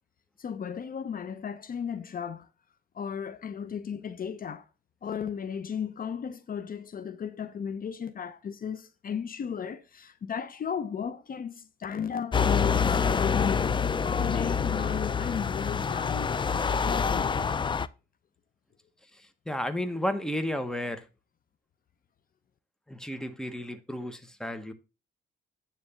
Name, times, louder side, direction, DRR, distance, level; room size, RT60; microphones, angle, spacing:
voice 1, 0.4-2.5 2.9-4.7 5.0-13.8 14.2-17.5, left 7 dB, 45° left, 0.8 m, -35 dB
sound 1, 12.3-17.9, left 6 dB, 25° left, 0.4 m, -26 dB
voice 2, 19.5-21.0 22.9-24.7, left 1 dB, 5° left, 1.2 m, -32 dB
9.8 x 3.4 x 6.8 m
cardioid pair, 90°, 20 cm